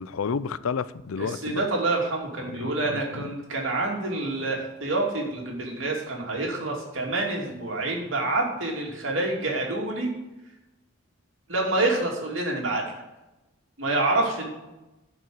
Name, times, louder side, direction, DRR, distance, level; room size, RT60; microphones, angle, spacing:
voice 1, 0.0-1.7 2.6-3.0, left 5 dB, 75° left, 0.5 m, -30 dB
voice 2, 1.2-10.1 11.5-12.8 13.8-14.5, right 2 dB, 65° right, 3.0 m, -27 dB
11.0 x 5.6 x 7.9 m
head